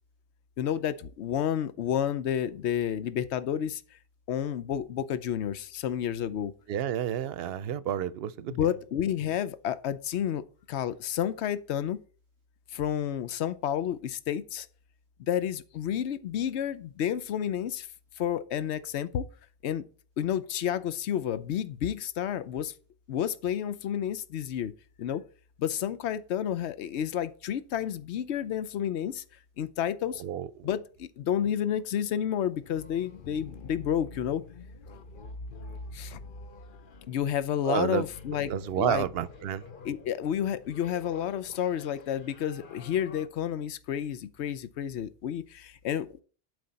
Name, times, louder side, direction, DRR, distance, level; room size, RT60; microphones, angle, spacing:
voice 1, 0.6-4.0 4.3-6.5 8.5-12.0 12.7-14.7 15.3-17.9 18.2-19.3 19.6-19.9 20.2-22.7 23.1-24.7 25.0-25.2 25.6-29.2 29.6-30.2 30.6-34.4 35.9-36.2 37.1-39.1 39.8-46.2, left 9 dB, 80° left, 0.9 m, -30 dB
voice 2, 6.7-8.5 30.2-30.7 37.7-38.0 38.5-39.6, right 10 dB, 65° right, 0.8 m, -30 dB
sound 1, 31.6-43.3, left 3 dB, 55° left, 0.9 m, -47 dB
11.5 x 5.1 x 4.1 m
omnidirectional pair, 1.1 m